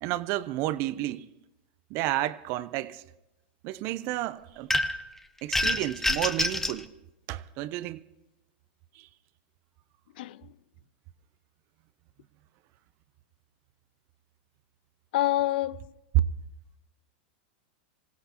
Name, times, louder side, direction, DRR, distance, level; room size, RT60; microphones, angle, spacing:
voice 1, 0.0-1.3 1.9-3.0 3.6-4.7 5.4-6.9 7.3-8.0 8.9-9.1 16.1-16.3, right 15 dB, 50° right, 0.6 m, -30 dB
sound 1, 4.7-5.1 5.5-6.8, left 1 dB, 5° left, 0.8 m, -27 dB
voice 2, 15.1-15.8, left 15 dB, 70° left, 0.4 m, -26 dB
25.5 x 16.0 x 3.0 m
hypercardioid pair, 115°, 5 cm